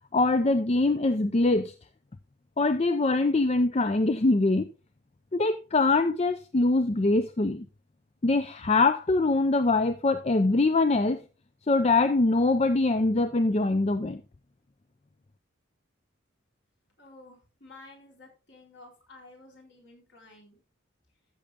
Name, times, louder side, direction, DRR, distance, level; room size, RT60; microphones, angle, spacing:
voice 1, 0.1-1.7 2.6-4.7 5.3-7.7 8.2-11.2 11.7-14.2, left 2 dB, 30° left, 0.5 m, -23 dB
voice 2, 17.0-20.6, left 2 dB, 55° left, 4.1 m, -52 dB
14.0 x 6.8 x 3.5 m
head